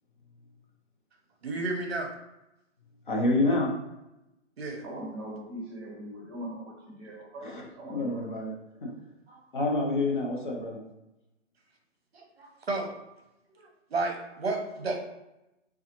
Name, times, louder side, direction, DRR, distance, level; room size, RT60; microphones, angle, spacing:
voice 1, 1.4-2.1 4.6-4.8 9.3-9.4 12.1-12.9 13.9-15.0, right 3 dB, 55° right, 3 dB, 0.8 m, -32 dB
voice 2, 3.1-3.7 7.4-7.6 7.9-8.5 8.8-8.9 9.5-10.8, left 2 dB, 40° left, -1 dB, 0.7 m, -27 dB
voice 3, 4.8-8.2, right 1 dB, 20° right, -3 dB, 1.1 m, -41 dB
3.7 x 2.4 x 2.9 m, 0.92 s
hypercardioid pair, 180°, 38 cm